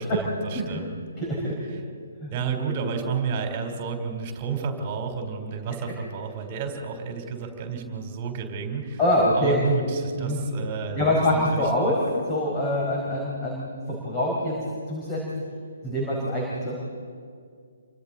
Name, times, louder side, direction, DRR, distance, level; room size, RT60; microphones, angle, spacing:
voice 1, 0.0-1.0 1.7-1.8 2.3-9.0 9.3-11.7, right 5 dB, 30° right, 4 dB, 3.8 m, -31 dB
voice 2, 1.2-1.8 2.2-2.3 9.0-9.5 10.2-10.4 10.9-12.0 12.3-14.5 14.9-15.2 15.8-16.7, left 1 dB, 20° left, -4 dB, 5.0 m, -25 dB
29.5 x 24.5 x 4.1 m, 2.1 s
figure-of-eight pair, 135°, 0 cm